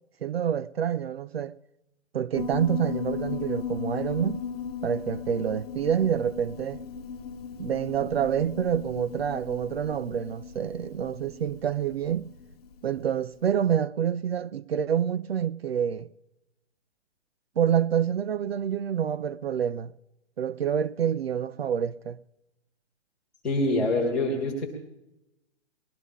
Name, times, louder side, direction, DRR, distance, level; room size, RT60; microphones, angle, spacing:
voice 1, 0.2-1.5 2.1-4.4 4.8-6.8 7.6-12.3 12.8-16.1 17.6-19.9 20.4-22.2, right 8 dB, 60° right, 0.5 m, -27 dB
Piano, 2.3-13.1, left 6 dB, 35° left, 1.2 m, -36 dB
voice 2, 23.4-24.7, left 2 dB, ahead, 0.7 m, -25 dB
21.0 x 12.5 x 3.6 m
hypercardioid pair, 175°, 35 cm